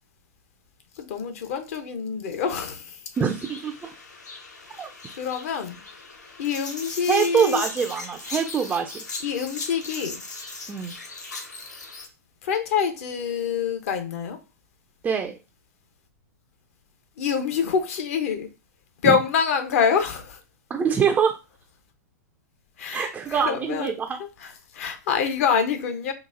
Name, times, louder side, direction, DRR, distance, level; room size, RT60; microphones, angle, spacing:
voice 1, 1.0-3.0 5.2-5.8 6.4-7.6 9.2-10.2 12.4-14.4 17.2-18.5 19.0-20.4 22.8-23.9 24.4-26.1, left 6 dB, 55° left, 0.7 m, -26 dB
sound 1, 3.1-12.1, left 3 dB, 75° left, 1.0 m, -38 dB
voice 2, 3.2-3.9 4.8-4.9 7.1-9.0 10.7-10.9 15.0-15.4 19.0-19.1 20.7-21.4 22.9-24.2, right 7 dB, 15° right, 0.3 m, -24 dB
3.9 x 2.5 x 2.5 m
figure-of-eight pair, 105°, 9 cm